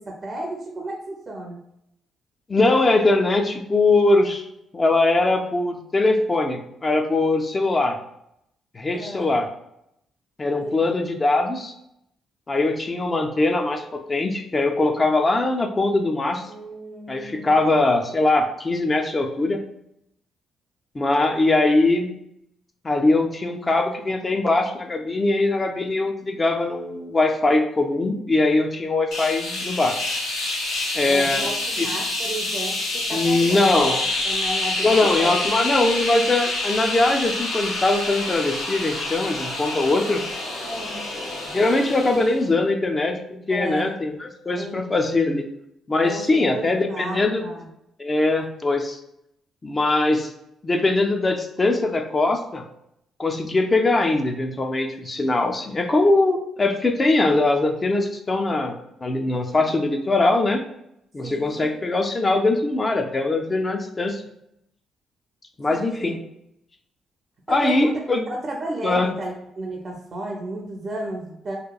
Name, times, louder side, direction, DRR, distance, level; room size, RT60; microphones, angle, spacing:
voice 1, 0.1-1.6 8.9-9.3 10.6-10.8 16.5-17.8 31.1-35.3 40.6-41.1 43.5-44.0 44.6-44.9 46.0-47.7 59.3-59.8 61.2-61.8 65.7-66.1 67.5-67.9 68.3-71.6, right 1 dB, 35° right, -1 dB, 0.5 m, -33 dB
voice 2, 2.5-4.4 4.7-8.0 8.7-9.5 10.4-11.7 12.5-16.4 17.1-19.6 20.9-22.1 22.8-30.0 30.9-31.5 31.8-31.9 33.1-34.0 34.8-40.2 41.5-43.1 43.5-45.5 45.9-47.4 48.0-49.0 49.6-50.3 50.6-52.6 53.2-58.7 59.0-60.6 61.1-64.2 65.6-66.2 67.5-68.2 68.8-69.1, left 2 dB, 25° left, 4 dB, 0.4 m, -21 dB
sound 1, 29.1-42.4, left 2 dB, 85° left, 0.8 m, -27 dB
2.9 x 2.2 x 2.3 m, 0.78 s
cardioid pair, 90°, 0 cm